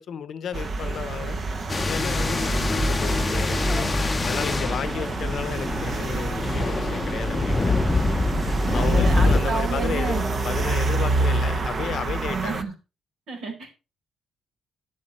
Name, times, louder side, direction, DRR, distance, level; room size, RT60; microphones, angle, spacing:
voice 1, 0.0-1.4 1.8-3.9 4.2-7.6 8.7-12.6, left 8 dB, 60° left, 0.8 m, -33 dB
sound 1, 0.5-12.6, right 3 dB, 45° right, 1.0 m, -27 dB
sound 2, 1.5-4.3 4.8-6.0 7.3-11.0, equal, 10° right, 2.2 m, -45 dB
sound 3, 1.7-9.4, left 3 dB, 25° left, 0.7 m, -25 dB
voice 2, 8.6-10.2 12.3-12.7 13.3-13.7, right 4 dB, 75° right, 4.5 m, -30 dB
11.0 x 7.6 x 4.3 m
cardioid pair, 105°, 0 cm